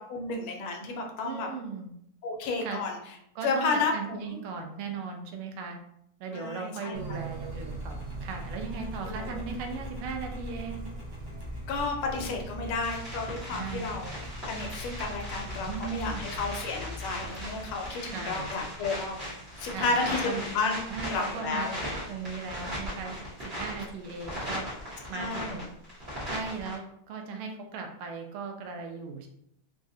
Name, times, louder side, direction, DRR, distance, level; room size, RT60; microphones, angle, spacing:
voice 1, 0.0-1.5 2.2-3.0 3.4-4.4 6.3-7.0 9.0-9.4 11.7-14.1 14.4-19.3 19.6-20.8 21.1-21.8 25.1-25.7, left 3 dB, 80° left, 2 dB, 1.5 m, -32 dB
voice 2, 1.2-1.9 2.6-2.8 3.3-5.8 6.2-10.8 13.5-14.1 15.6-16.5 18.0-18.5 19.7-20.4 20.9-23.2 23.4-24.6 25.1-25.6 26.3-29.3, right 5 dB, 85° right, 4 dB, 1.5 m, -38 dB
Engine, 6.9-18.6, right 1 dB, 55° right, 1.2 m, -40 dB
sound 1, 12.8-26.8, equal, 35° right, 1.2 m, -38 dB
3.9 x 2.4 x 2.6 m, 0.74 s
omnidirectional pair, 2.3 m